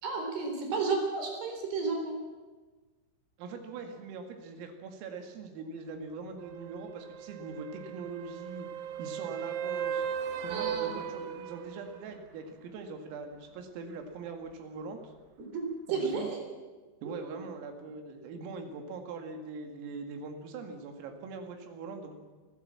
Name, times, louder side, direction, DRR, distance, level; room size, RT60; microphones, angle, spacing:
voice 1, 0.0-2.2 10.5-11.0 15.5-16.4 17.0-17.4, right 4 dB, 55° right, 3 dB, 5.4 m, -32 dB
voice 2, 3.4-8.7 9.0-10.0 10.4-15.1 15.9-16.3 17.0-22.1, right 4 dB, 85° right, 4 dB, 4.7 m, -42 dB
sound 1, 6.4-12.0 16.1-16.2, right 8 dB, 70° right, 2.7 m, -37 dB
25.5 x 15.0 x 7.6 m, 1.3 s
omnidirectional pair, 5.8 m